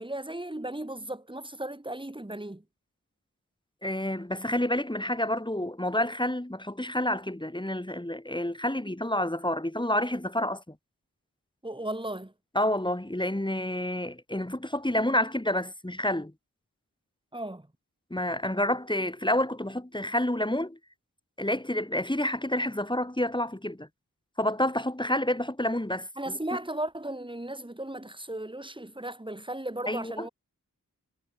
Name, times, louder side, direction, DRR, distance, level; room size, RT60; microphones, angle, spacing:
voice 1, 0.0-2.6 11.6-12.3 17.3-17.7 26.2-30.3, right 1 dB, 15° right, 1.5 m, -36 dB
voice 2, 3.8-10.8 12.6-16.3 18.1-20.8 21.4-23.9 24.4-26.1 29.9-30.3, left 1 dB, 15° left, 1.8 m, -29 dB
wide cardioid pair, 45°, 36 cm